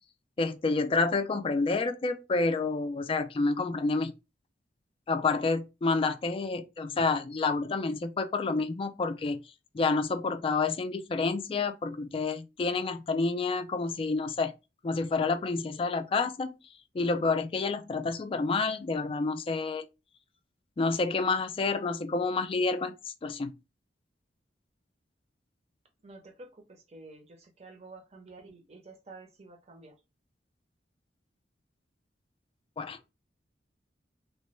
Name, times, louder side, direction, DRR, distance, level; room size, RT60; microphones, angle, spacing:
voice 1, 0.4-4.1 5.1-9.4 9.7-14.5 14.8-16.6 16.9-19.9 20.8-23.5 32.8-33.0, left 3 dB, 30° left, 0.3 m, -29 dB
voice 2, 26.0-30.0, right 3 dB, 35° right, 0.7 m, -50 dB
2.9 x 2.1 x 3.1 m
head